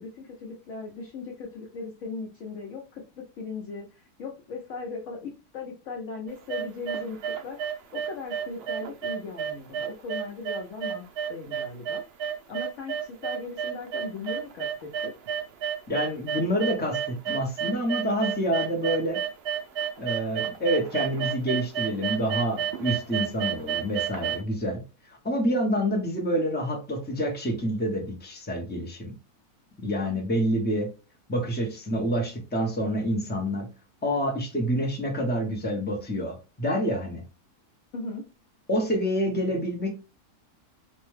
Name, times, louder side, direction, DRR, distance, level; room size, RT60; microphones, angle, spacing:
voice 1, 0.0-11.0 11.3-12.0 12.5-15.1 37.9-38.3, left 4 dB, 60° left, 0.9 m, -38 dB
sound 1, 6.3-24.4, right 8 dB, 90° right, 0.5 m, -30 dB
voice 2, 15.9-19.2 20.0-24.8 25.2-29.1 29.8-30.9 31.3-33.7 34.0-37.2 38.7-39.9, equal, 15° left, 0.3 m, -27 dB
2.7 x 2.2 x 3.1 m
omnidirectional pair, 1.6 m